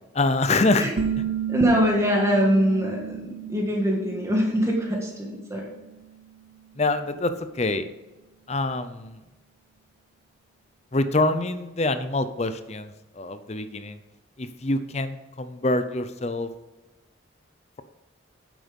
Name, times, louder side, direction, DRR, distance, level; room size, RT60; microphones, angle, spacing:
voice 1, 0.1-0.9 1.2-1.3 6.8-7.9 8.5-9.2 10.9-14.0 14.4-16.5, left 2 dB, 35° left, 11 dB, 0.6 m, -25 dB
sound 1, 1.0-6.4, right 8 dB, 75° right, 0.7 m, -33 dB
voice 2, 1.5-5.7, equal, 15° right, -1 dB, 2.0 m, -23 dB
9.8 x 7.7 x 5.3 m, 1.1 s
head